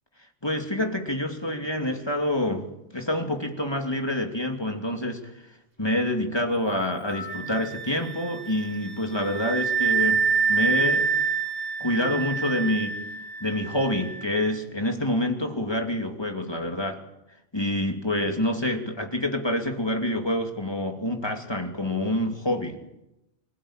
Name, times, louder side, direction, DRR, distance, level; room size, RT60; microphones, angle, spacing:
voice 1, 0.4-5.3 5.8-11.1 11.8-13.0 13.4-17.0 17.5-22.8, left 1 dB, 20° left, 2.7 m, -27 dB
Wind instrument woodwind instrument, 7.1-14.5, right 5 dB, 50° right, 2.6 m, -27 dB
26.0 x 16.0 x 9.0 m
omnidirectional pair, 1.2 m